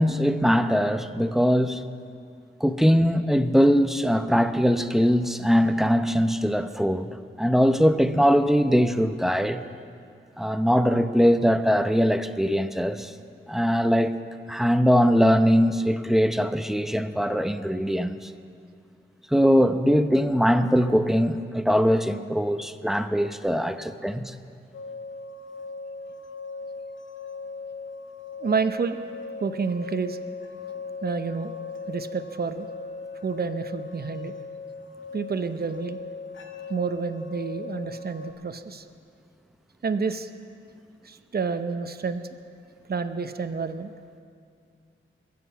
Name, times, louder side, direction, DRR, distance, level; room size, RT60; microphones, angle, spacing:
voice 1, 0.0-1.9 2.6-9.6 10.4-13.1 13.5-14.2 14.5-18.3 19.3-24.3, equal, ahead, 9 dB, 0.7 m, -21 dB
sound 1, 24.7-38.3, left 4 dB, 65° left, 1.4 m, -39 dB
voice 2, 28.4-29.0 29.4-30.2 31.0-31.5 31.9-32.7 33.2-34.3 35.1-36.0 36.7-38.9 39.8-40.3 41.0-42.2 42.9-43.9, right 5 dB, 50° right, 9 dB, 0.8 m, -29 dB
22.0 x 7.7 x 5.8 m, 2.3 s
cardioid pair, 55°, 21 cm